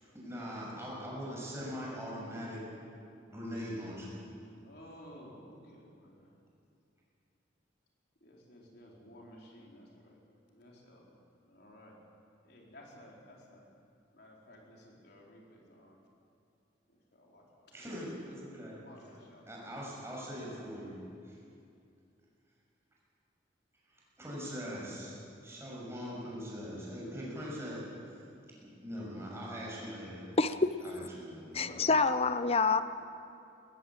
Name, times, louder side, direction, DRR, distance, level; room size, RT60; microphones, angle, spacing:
voice 1, 0.2-2.7 3.3-4.2 17.7-18.8 19.5-21.4 23.9-27.9 28.8-30.3 30.8-31.9, equal, 15° right, -5 dB, 6.8 m, -41 dB
voice 2, 4.6-6.3 8.2-10.2 10.5-11.1 11.4-12.0 12.4-13.7 14.1-16.0 16.9-17.7 18.6-19.5, equal, 60° left, -2 dB, 4.3 m, -55 dB
voice 3, 30.4-30.7 31.0-31.1 31.5-32.8, left 4 dB, 35° left, 12 dB, 0.7 m, -27 dB
20.5 x 14.5 x 8.9 m, 2.5 s
head